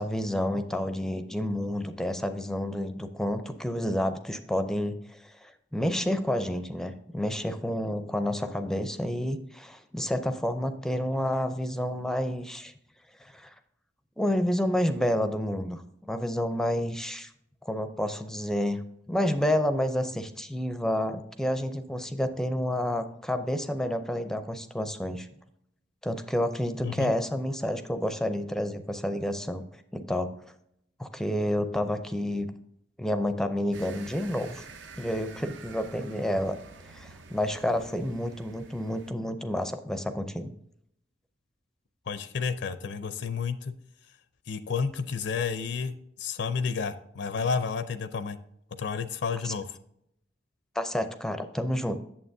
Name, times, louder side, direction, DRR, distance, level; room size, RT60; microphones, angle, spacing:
voice 1, 0.0-12.7 13.2-13.5 14.2-17.3 17.7-25.3 26.0-29.6 29.9-30.3 31.0-32.5 33.0-34.6 34.9-36.6 36.9-40.5 49.4-49.5 50.8-52.0, left 1 dB, 5° left, 8 dB, 0.5 m, -29 dB
sound 1, 33.7-39.1, right 4 dB, 75° right, 0.7 m, -48 dB
voice 2, 42.1-43.7 44.5-48.4 48.8-49.7, left 5 dB, 65° left, 12 dB, 0.5 m, -31 dB
8.6 x 7.2 x 2.6 m, 0.74 s
head